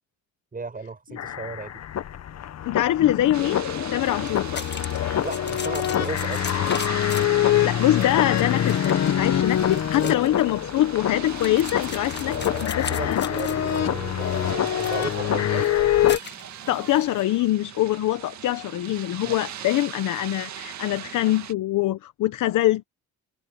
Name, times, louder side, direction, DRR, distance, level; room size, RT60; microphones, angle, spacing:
voice 1, 0.5-1.7 4.2-4.4 5.2-6.4 9.7-10.1 12.3-15.9 19.2-19.4, right 4 dB, 30° right, 8.0 m, -35 dB
sound 1, 1.2-16.2, left 11 dB, 60° left, 1.3 m, -25 dB
voice 2, 2.6-3.6 3.9-4.6 7.6-13.3 16.7-22.8, left 14 dB, 80° left, 1.2 m, -24 dB
sound 2, 3.3-21.5, right 10 dB, 65° right, 2.1 m, -39 dB
sound 3, 4.0-17.2, left 6 dB, 35° left, 1.6 m, -39 dB
cardioid pair, 90°, 30 cm